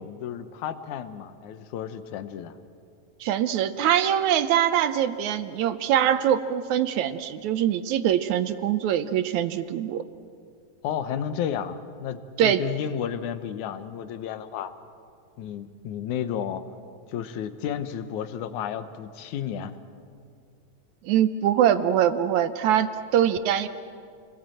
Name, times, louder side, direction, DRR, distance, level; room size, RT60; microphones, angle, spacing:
voice 1, 0.0-2.6 10.8-14.7 15.4-16.6 17.1-19.7, left 9 dB, 70° left, 11 dB, 2.3 m, -32 dB
voice 2, 3.2-10.0 12.4-12.6 21.0-23.7, right 10 dB, 75° right, 11 dB, 1.9 m, -23 dB
30.0 x 21.0 x 7.8 m, 2.3 s
omnidirectional pair, 3.9 m